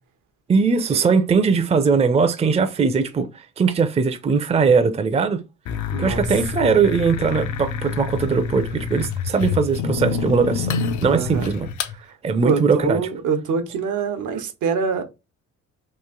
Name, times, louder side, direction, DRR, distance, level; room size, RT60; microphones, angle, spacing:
voice 1, 0.5-5.4 6.0-11.7 12.2-13.0, right 5 dB, 20° right, 0.4 m, -20 dB
sound 1, 5.7-12.0, left 6 dB, 70° left, 0.6 m, -27 dB
voice 2, 5.9-6.2 11.1-11.5 12.4-15.0, right 5 dB, 75° right, 0.8 m, -24 dB
3.1 x 2.5 x 3.6 m
cardioid pair, 90°, 30 cm